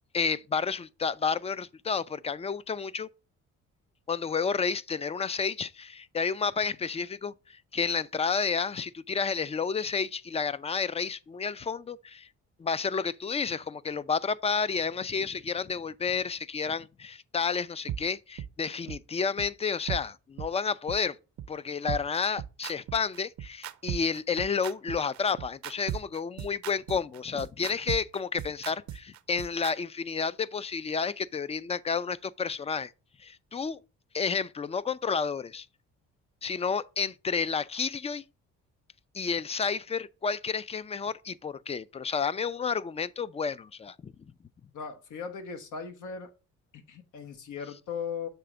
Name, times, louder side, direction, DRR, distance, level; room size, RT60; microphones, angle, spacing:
voice 1, 0.1-3.1 4.1-12.3 12.6-21.2 21.5-32.9 33.2-33.8 34.1-35.7 36.4-38.2 39.1-44.1, left 5 dB, 20° left, 0.3 m, -31 dB
sound 1, 17.9-18.0 18.4-18.5 18.9-19.0 19.4-19.5 19.9-20.0 20.4-20.5 20.9-21.0 21.4-21.5 21.9-29.7, right 10 dB, 70° right, 0.6 m, -36 dB
voice 2, 44.7-46.3 46.7-48.3, left 6 dB, 80° left, 1.2 m, -38 dB
6.8 x 3.4 x 4.9 m
cardioid pair, 90°, 30 cm